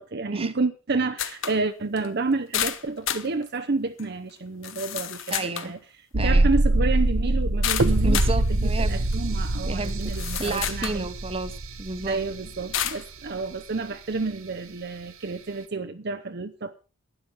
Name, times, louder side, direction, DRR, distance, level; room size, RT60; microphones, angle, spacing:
voice 1, 0.0-5.8 6.1-8.2 8.6-11.1 12.1-16.7, right 3 dB, 45° right, 0.7 m, -30 dB
sound 1, 1.2-1.6 2.0-2.1 2.5-3.3 4.0-4.1 4.6-5.7 7.6-8.4 9.1-9.2 9.8-11.0 11.5-11.6 12.7-13.0, left 10 dB, 60° left, 1.0 m, -30 dB
voice 2, 5.3-5.7 6.2-6.5 8.0-9.0 9.7-10.1 10.4-12.2, right 3 dB, 25° right, 1.0 m, -31 dB
sound 2, 6.1-13.0 13.3-13.4, right 2 dB, 70° right, 1.1 m, -24 dB
12.0 x 10.0 x 5.6 m
head